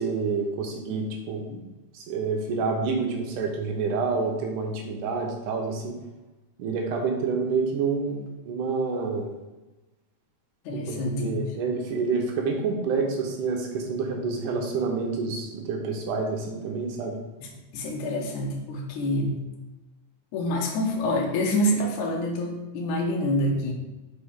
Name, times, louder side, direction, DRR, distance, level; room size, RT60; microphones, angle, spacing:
voice 1, 0.0-1.4 1.9-6.0 6.6-9.3 10.7-17.2, right 4 dB, 75° right, 1 dB, 2.2 m, -28 dB
voice 2, 10.7-11.5 17.4-19.4 20.3-23.7, left 1 dB, 70° left, -1 dB, 2.2 m, -27 dB
5.3 x 5.2 x 3.6 m, 1.1 s
omnidirectional pair, 4.0 m